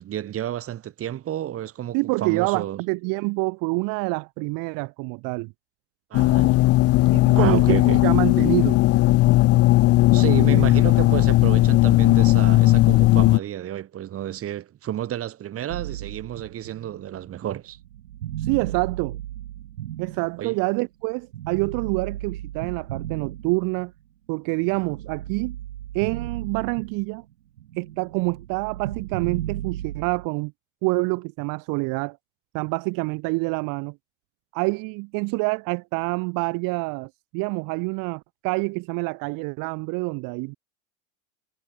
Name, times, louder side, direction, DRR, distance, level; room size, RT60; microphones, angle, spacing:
voice 1, 0.0-2.8 6.1-6.6 7.3-8.0 10.1-17.8 20.4-20.6, right 11 dB, 35° right, 4.3 m, -31 dB
voice 2, 1.9-5.5 7.1-8.8 18.4-19.2 20.0-23.9 24.3-25.6 25.9-27.2 27.8-30.5 30.8-32.2 32.5-34.0 34.5-40.5, right 29 dB, 55° right, 3.5 m, -27 dB
sound 1, 6.1-13.4, left 18 dB, 40° left, 0.9 m, -17 dB
sound 2, 15.7-20.8 21.3-24.0 24.5-27.3 27.6-30.3, right 13 dB, 85° right, 5.5 m, -35 dB
hypercardioid pair, 110°, 39 cm